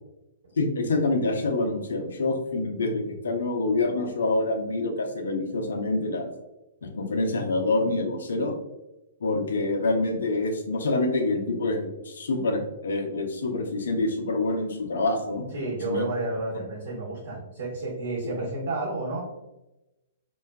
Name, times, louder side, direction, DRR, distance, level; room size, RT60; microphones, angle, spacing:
voice 1, 0.6-6.3 6.8-8.6 9.2-15.4 15.9-16.0, left 2 dB, 70° left, 3 dB, 0.5 m, -26 dB
voice 2, 15.5-19.2, right 2 dB, 70° right, -6 dB, 1.0 m, -31 dB
2.5 x 2.3 x 2.2 m, 0.96 s
figure-of-eight pair, 115°, 0 cm